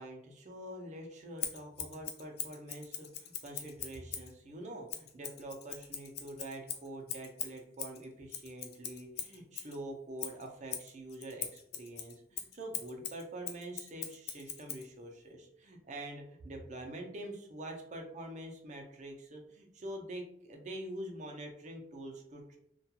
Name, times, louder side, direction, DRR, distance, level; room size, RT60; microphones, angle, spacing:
voice 1, 0.0-22.6, right 1 dB, 40° right, 2 dB, 0.5 m, -45 dB
Scissors, 1.4-4.3 4.9-9.8 10.2-14.9, left 9 dB, 60° left, 0.4 m, -42 dB
2.3 x 2.2 x 2.7 m, 0.71 s
head